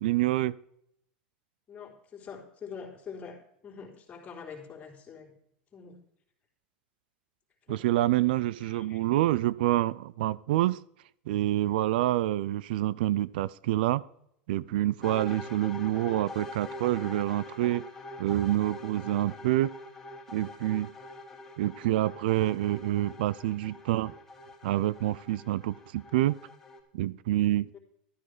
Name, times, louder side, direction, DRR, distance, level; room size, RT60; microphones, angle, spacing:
voice 1, 0.0-0.6 7.7-10.8 11.3-14.0 14.5-17.8 18.2-19.7 20.3-20.9 21.6-24.1 24.6-26.4 26.9-27.7, right 15 dB, 75° right, 21 dB, 0.5 m, -27 dB
voice 2, 1.7-5.4 5.7-6.0 7.7-7.8 8.5-9.0 27.7-27.8, left 6 dB, 25° left, -1 dB, 3.6 m, -45 dB
sound 1, 15.0-26.8, left 2 dB, 5° left, 3.2 m, -44 dB
13.0 x 9.6 x 5.0 m, 0.71 s
supercardioid pair, 120°, 5 cm